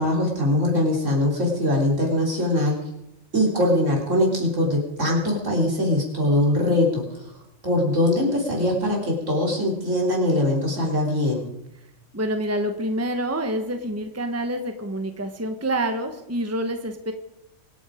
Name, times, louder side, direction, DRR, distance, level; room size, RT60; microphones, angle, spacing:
voice 1, 0.0-2.8 3.3-7.3 7.6-11.5, left 1 dB, 70° right, -2 dB, 4.4 m, -22 dB
voice 2, 12.1-17.1, right 1 dB, 10° right, 6 dB, 1.2 m, -27 dB
24.5 x 9.0 x 5.1 m, 0.86 s
omnidirectional pair, 1.3 m